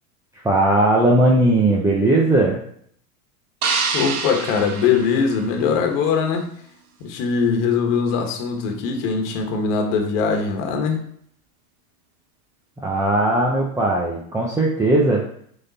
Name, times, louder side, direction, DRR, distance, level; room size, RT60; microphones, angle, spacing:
voice 1, 0.4-2.6 12.8-15.2, right 1 dB, 5° right, -3 dB, 0.8 m, -18 dB
sound 1, 3.6-5.9, right 5 dB, 85° right, 1.7 m, -26 dB
voice 2, 3.9-6.5 7.0-11.0, left 5 dB, 55° left, 3 dB, 1.5 m, -21 dB
6.5 x 3.8 x 4.1 m, 0.64 s
supercardioid pair, 130°, 44 cm